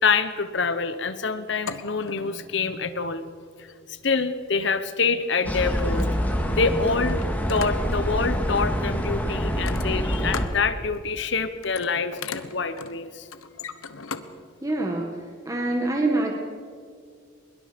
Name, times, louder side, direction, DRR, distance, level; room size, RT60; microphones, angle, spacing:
voice 1, 0.0-3.2 3.6-6.1 6.6-7.2 7.5-13.3, left 4 dB, 55° left, 12 dB, 1.0 m, -26 dB
sound 1, 1.5-2.5 3.6-3.8 5.0-5.1 5.4-6.4 7.1-8.1 9.5-10.6 10.9-11.3 11.5-14.3 14.7-14.8, left 5 dB, 90° left, 1.2 m, -38 dB
sound 2, 5.4-10.5, equal, 10° left, 2.1 m, -26 dB
voice 2, 14.6-15.1 15.5-16.3, right 2 dB, 15° right, 1 dB, 1.7 m, -25 dB
23.5 x 22.0 x 5.2 m, 2.1 s
head